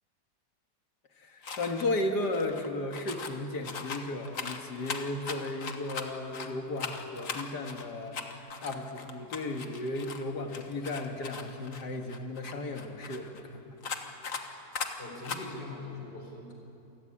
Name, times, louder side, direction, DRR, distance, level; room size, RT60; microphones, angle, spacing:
voice 1, 1.2-13.8, left 2 dB, 75° left, 4 dB, 2.3 m, -35 dB
sound 1, 1.4-1.9 2.2-3.4 3.6-6.5 6.8-10.2 10.5-13.4 13.8-14.4 14.7-14.9 15.2-15.4, left 5 dB, 50° left, 1.8 m, -39 dB
voice 2, 14.5-16.5, left 3 dB, 90° left, 1 dB, 5.1 m, -43 dB
27.5 x 16.5 x 9.9 m, 2.9 s
omnidirectional pair, 1.8 m